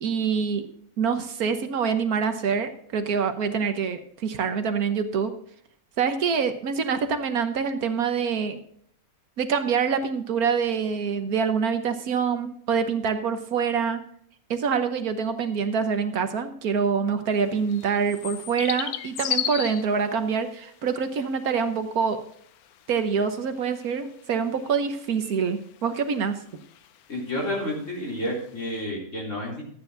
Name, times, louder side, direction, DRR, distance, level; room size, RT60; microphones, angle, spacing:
voice 1, 0.0-0.7 1.0-5.3 6.0-8.6 9.4-14.0 14.5-22.2 22.9-26.4, right 6 dB, 80° right, 8 dB, 1.5 m, -25 dB
sound 1, 17.3-28.8, left 10 dB, 80° left, 1.2 m, -36 dB
voice 2, 27.1-29.6, left 1 dB, 55° left, -3 dB, 4.2 m, -30 dB
13.5 x 9.3 x 3.9 m, 0.64 s
omnidirectional pair, 1.6 m